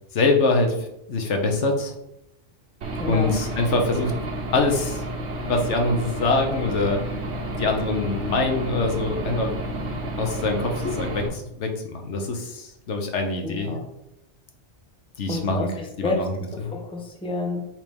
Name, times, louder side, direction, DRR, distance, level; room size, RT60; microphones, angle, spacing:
voice 1, 0.1-0.7 1.1-1.9 3.1-4.1 4.5-5.0 5.4-7.0 7.6-9.6 10.2-13.8 15.2-15.7 16.0-16.3 16.6-16.7, left 3 dB, 80° left, 3 dB, 1.3 m, -24 dB
Aircraft / Engine, 2.8-11.3, right 1 dB, 90° right, 1.4 m, -31 dB
voice 2, 3.0-3.3 13.4-13.8 15.3-17.6, left 2 dB, 5° left, 2 dB, 0.8 m, -30 dB
5.9 x 3.4 x 5.3 m, 0.83 s
omnidirectional pair, 1.2 m